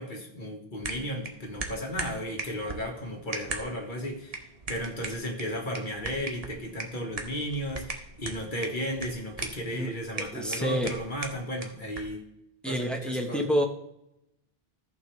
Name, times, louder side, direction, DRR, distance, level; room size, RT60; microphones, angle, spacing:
voice 1, 0.0-4.4 4.7-12.3 12.6-13.5, equal, 50° left, 1 dB, 1.7 m, -34 dB
sound 1, 0.8-12.2, right 3 dB, 40° right, 1.0 m, -40 dB
voice 2, 9.7-10.9 12.6-13.7, equal, ahead, 2 dB, 0.9 m, -29 dB
14.0 x 6.8 x 3.2 m, 0.82 s
omnidirectional pair, 1.0 m